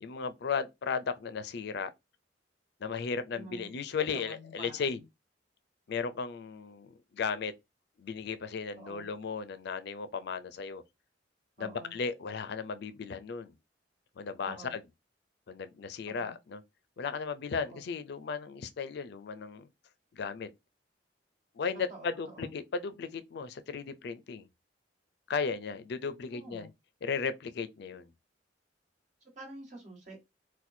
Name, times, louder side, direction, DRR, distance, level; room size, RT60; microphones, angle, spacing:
voice 1, 0.0-1.9 2.8-5.0 5.9-7.5 8.0-10.8 11.6-13.5 14.2-14.9 15.5-16.6 17.0-19.7 20.1-20.5 21.5-24.5 25.3-26.7 27.0-28.1, left 5 dB, 65° left, 0.4 m, -35 dB
voice 2, 3.3-3.8 4.1-5.0 8.8-9.1 11.6-12.0 14.4-14.8 16.1-16.3 17.7-17.8 21.9-22.5 26.3-26.7 29.2-30.2, right 2 dB, 45° right, 1.5 m, -48 dB
4.2 x 2.2 x 2.6 m
head